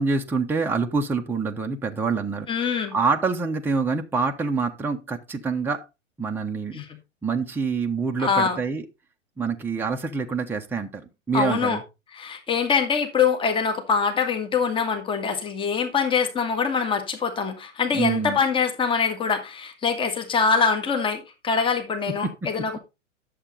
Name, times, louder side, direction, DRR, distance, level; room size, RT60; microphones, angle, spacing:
voice 1, 0.0-5.9 6.2-6.8 7.2-8.8 9.4-11.8 17.9-18.4, right 4 dB, 5° right, 1.0 m, -26 dB
voice 2, 2.5-3.0 6.7-6.9 8.2-8.6 11.3-11.8 12.1-22.8, left 5 dB, 15° left, 1.7 m, -24 dB
11.0 x 7.6 x 4.1 m
figure-of-eight pair, 105°, 38 cm